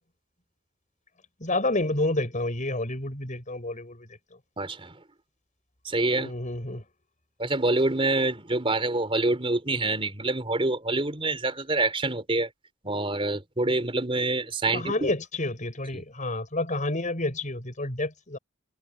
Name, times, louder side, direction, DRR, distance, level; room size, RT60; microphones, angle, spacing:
voice 1, 1.4-4.4 6.2-6.8 14.7-18.4, left 2 dB, 35° left, 6.3 m, -29 dB
voice 2, 4.6-4.9 5.8-6.3 7.4-12.5 12.8-15.1, right 2 dB, 25° right, 4.0 m, -26 dB
head